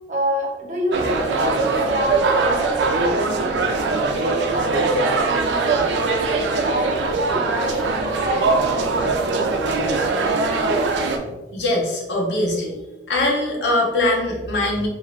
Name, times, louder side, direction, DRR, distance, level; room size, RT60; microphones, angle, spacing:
voice 1, 0.1-5.8 6.6-9.6, equal, 45° right, -2 dB, 0.7 m, -27 dB
sound 1, 0.9-11.2, right 3 dB, 90° right, 0.4 m, -21 dB
voice 2, 11.3-12.7 13.1-14.9, left 1 dB, 85° left, -1 dB, 0.8 m, -22 dB
2.7 x 2.4 x 3.1 m, 1.1 s
head